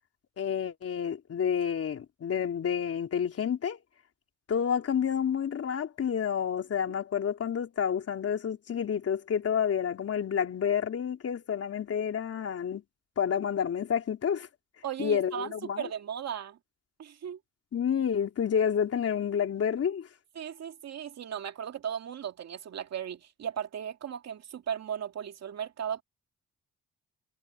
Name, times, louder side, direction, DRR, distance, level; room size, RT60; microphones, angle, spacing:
voice 1, 0.4-3.8 4.5-12.8 13.2-14.5 15.0-15.9 17.7-20.1, left 8 dB, 50° left, 3.9 m, -29 dB
voice 2, 14.8-16.6 17.0-17.4 20.3-26.0, right 8 dB, 60° right, 2.4 m, -36 dB
cardioid pair, 90°, 30 cm